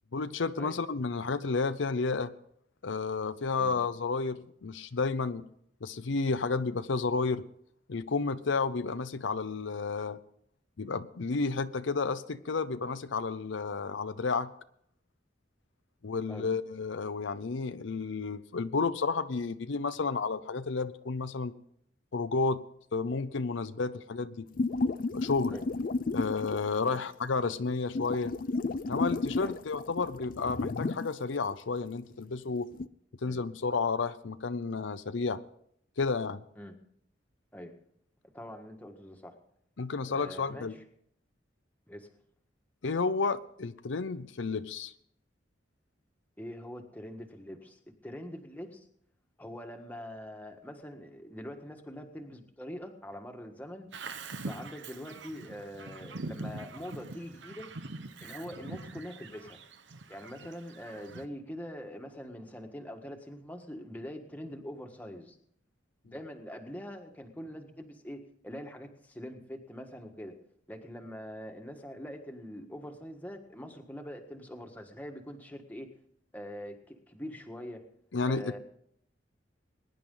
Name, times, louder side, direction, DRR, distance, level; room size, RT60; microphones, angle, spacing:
voice 1, 0.1-2.3 2.8-5.5 5.8-7.4 7.9-10.2 10.8-14.5 16.0-21.5 22.1-22.6 22.9-24.5 25.1-25.6 26.1-28.3 28.9-32.7 33.2-35.4 36.0-36.4 39.8-40.7 42.8-44.9 78.1-78.6, left 4 dB, 85° left, 11 dB, 0.6 m, -31 dB
sound 1, 24.6-26.8 27.6-31.1 31.5-31.6 32.7-32.9, left 3 dB, 50° left, 0.4 m, -32 dB
voice 2, 38.3-39.3 40.1-40.8 41.9-42.1 46.4-48.8 49.4-53.9 54.4-57.7 58.2-59.6 60.1-65.4 66.1-70.3 70.7-75.9 76.3-77.8 78.3-78.6, equal, 10° left, 3 dB, 1.5 m, -43 dB
Bird vocalization bird call bird song, 53.9-61.3, right 3 dB, 70° right, 1.0 m, -43 dB
21.5 x 10.5 x 3.8 m, 0.68 s
head